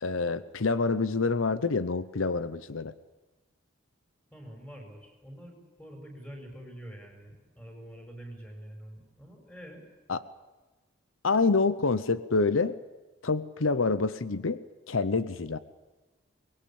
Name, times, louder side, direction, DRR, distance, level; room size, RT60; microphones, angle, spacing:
voice 1, 0.0-2.9 10.1-10.2 11.2-12.7 13.2-14.6 14.9-15.6, left 4 dB, 85° left, 15 dB, 0.9 m, -27 dB
voice 2, 4.3-9.8, equal, 10° left, 3 dB, 5.6 m, -46 dB
23.5 x 20.5 x 8.7 m, 1.2 s
head